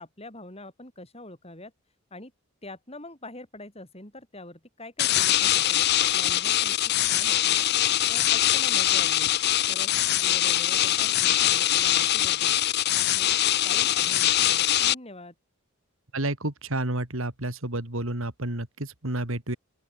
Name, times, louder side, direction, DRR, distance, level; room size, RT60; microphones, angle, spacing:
voice 1, 0.0-1.7 2.1-2.3 2.6-7.7 8.1-9.3 9.7-12.6 13.0-13.4 13.6-15.3, left 2 dB, 30° left, 6.3 m, -44 dB
sound 1, 5.0-14.9, left 13 dB, 50° left, 0.6 m, -23 dB
voice 2, 16.1-19.6, right 1 dB, 70° right, 3.1 m, -30 dB
open air
head